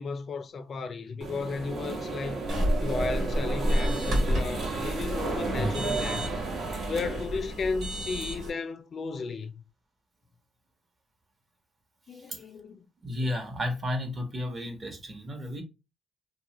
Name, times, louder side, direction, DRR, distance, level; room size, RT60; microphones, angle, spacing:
voice 1, 0.0-2.4 2.8-6.4 6.9-9.5 12.1-12.8, left 4 dB, 50° left, 0.3 m, -34 dB
sound 1, 1.2-7.2, right 3 dB, 60° right, 0.9 m, -33 dB
sound 2, 2.5-8.5, equal, 85° right, 1.6 m, -30 dB
voice 2, 13.0-15.6, left 1 dB, 35° right, 0.9 m, -33 dB
2.8 x 2.3 x 2.9 m
cardioid pair, 90°, 0 cm